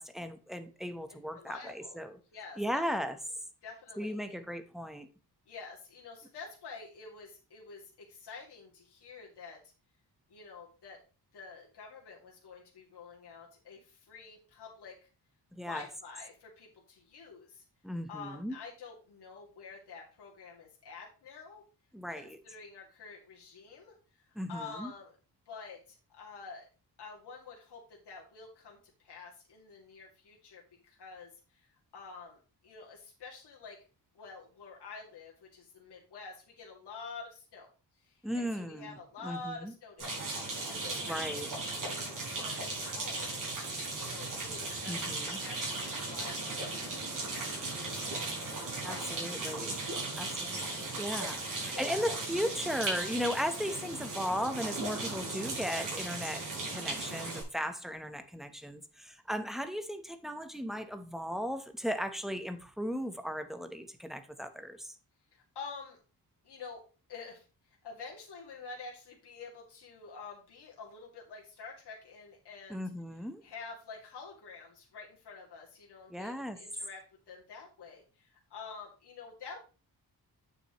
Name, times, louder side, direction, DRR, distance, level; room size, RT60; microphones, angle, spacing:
voice 1, 0.0-2.2 2.6-3.2 4.0-5.1 15.5-15.9 17.8-18.6 21.9-22.4 24.3-24.9 38.2-39.7 41.0-41.5 44.9-45.4 48.8-49.8 50.2-65.0 72.7-73.4 76.1-76.6, equal, ahead, 0.9 m, -36 dB
voice 2, 1.1-2.0 2.3-2.8 3.6-4.4 5.5-9.7 10.3-11.0 11.3-15.0 15.6-17.6 18.1-21.6 22.1-23.9 24.5-25.1 25.5-26.7 27.0-33.8 34.1-37.7 38.0-40.2 40.7-43.4 43.9-47.5 47.8-48.4 48.8-49.2 49.9-50.4 50.8-50.9 51.7-52.1 65.3-66.0 66.4-66.8 67.1-67.5 67.8-72.8 73.4-79.6, left 4 dB, 85° left, 2.5 m, -48 dB
sound 1, 40.0-57.4, right 2 dB, 50° right, 4.5 m, -37 dB
9.1 x 7.1 x 3.0 m
wide cardioid pair, 135°, 39 cm